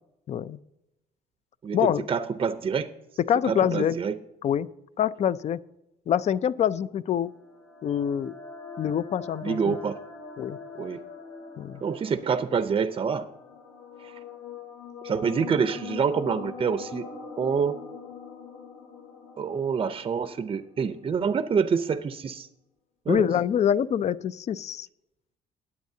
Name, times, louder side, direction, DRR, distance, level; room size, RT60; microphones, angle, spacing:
voice 1, 0.3-0.6 1.7-2.0 3.3-3.9 4.4-4.7 5.0-5.6 6.1-7.3 7.8-8.4 8.8-9.8 10.4-10.6 11.6-11.8 23.1-24.9, left 9 dB, 40° left, 17 dB, 0.5 m, -25 dB
voice 2, 1.6-2.9 3.4-4.1 9.4-10.0 10.8-11.0 11.8-13.3 14.0-14.2 15.0-17.1 17.4-17.8 19.4-22.5 23.1-23.3, right 6 dB, 30° right, 10 dB, 0.6 m, -27 dB
sound 1, 6.9-21.0, left 5 dB, 90° left, 4.3 m, -43 dB
19.5 x 8.4 x 2.8 m, 0.87 s
cardioid pair, 110°, 17 cm